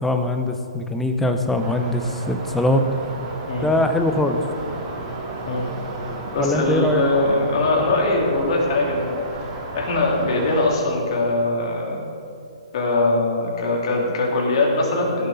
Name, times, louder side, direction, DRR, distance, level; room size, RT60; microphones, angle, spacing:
voice 1, 0.0-2.8 3.6-4.4 6.4-7.0, left 1 dB, 5° left, 5 dB, 0.8 m, -21 dB
sound 1, 1.5-10.7, right 2 dB, 35° right, 2.4 m, -33 dB
voice 2, 6.3-9.3 9.7-12.0 12.7-15.3, left 2 dB, 55° left, -2 dB, 3.2 m, -21 dB
16.5 x 7.8 x 4.1 m, 2.5 s
hypercardioid pair, 135°, 4 cm